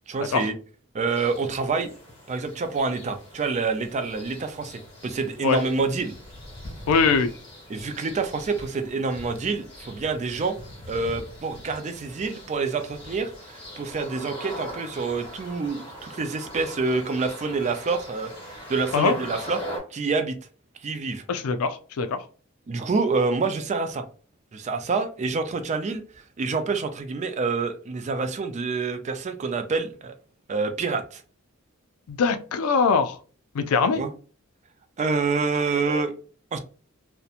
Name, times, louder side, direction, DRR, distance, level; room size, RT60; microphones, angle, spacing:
voice 1, 0.1-0.5 0.9-1.9 2.3-6.1 7.7-10.6 10.9-19.6 19.9-20.4 20.8-21.2 22.7-24.0 24.5-26.0 26.4-30.1 30.5-31.2 33.9-34.1 35.0-36.1 36.5-36.6, right 4 dB, 35° right, 0.3 m, -27 dB
sound 1, 1.1-19.8, equal, 25° left, 1.2 m, -41 dB
voice 2, 6.9-7.3 18.9-19.1 21.3-22.2 32.1-33.2 33.5-34.0, left 5 dB, 85° left, 0.4 m, -22 dB
2.8 x 2.1 x 2.4 m
head